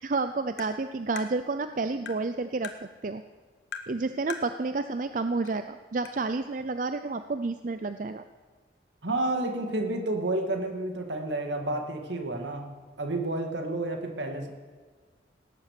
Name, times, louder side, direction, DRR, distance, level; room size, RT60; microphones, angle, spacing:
voice 1, 0.0-3.2 3.9-8.2, right 3 dB, 45° right, 10 dB, 0.5 m, -30 dB
Tap, 0.6-0.7 1.2-1.3 2.1-2.2 2.6-2.8 3.7-3.9 4.3-4.5 5.5-5.6 6.1-6.2, left 6 dB, 70° left, 1.3 m, -39 dB
voice 2, 9.0-12.7 13.0-14.5, right 2 dB, 75° right, 3 dB, 2.2 m, -30 dB
18.0 x 10.0 x 6.7 m, 1.5 s
head